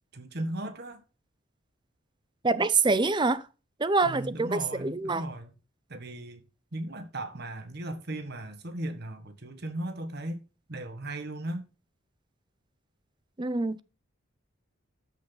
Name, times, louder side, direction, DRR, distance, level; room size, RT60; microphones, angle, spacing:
voice 1, 0.1-1.0 4.0-5.5 5.9-6.4 6.7-11.7, right 1 dB, 55° right, 1.5 m, -37 dB
voice 2, 2.4-3.4 3.8-5.2 13.4-13.8, right 3 dB, 25° right, 0.6 m, -25 dB
13.5 x 6.3 x 4.0 m
head